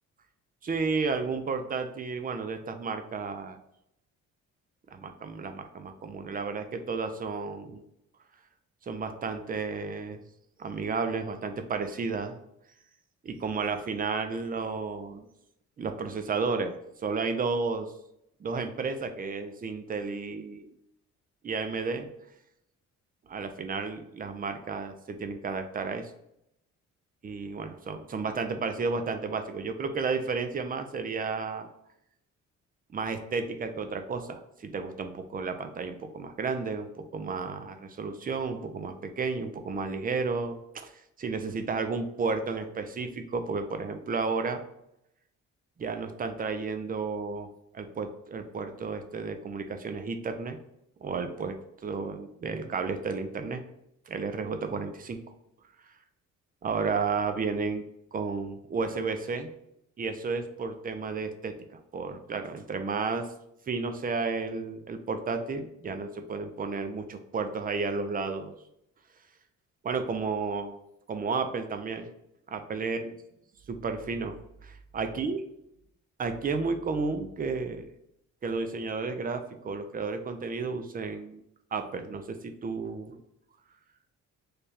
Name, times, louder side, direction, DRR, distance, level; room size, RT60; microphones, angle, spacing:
voice 1, 0.6-3.6 4.9-7.8 8.8-10.2 10.6-12.3 13.2-15.3 15.8-17.9 18.4-20.7 21.4-22.1 23.3-26.1 27.2-31.7 32.9-44.6 45.8-47.5 47.7-50.6 51.0-51.6 51.8-53.6 54.1-55.2 56.6-57.8 58.1-59.5 60.0-63.3 63.7-68.5 69.8-70.8 71.1-72.1 72.5-73.1 73.7-74.4 74.6-75.4 76.2-77.9 78.4-81.4 81.7-83.2, right 4 dB, 30° right, 8 dB, 0.5 m, -32 dB
3.3 x 2.3 x 4.1 m, 0.79 s
cardioid pair, 90°, 30 cm